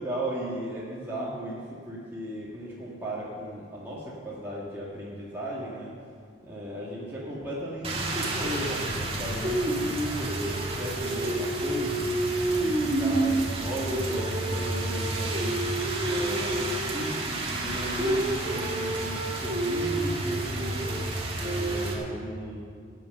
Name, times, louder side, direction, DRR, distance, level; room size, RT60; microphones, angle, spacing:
voice 1, 0.0-5.9 6.4-12.0 12.4-15.6 16.0-21.0 21.4-22.6, equal, 10° right, -7 dB, 1.9 m, -36 dB
Rain, 7.8-21.9, right 2 dB, 30° right, 2.0 m, -28 dB
19.0 x 8.1 x 6.5 m, 2.1 s
head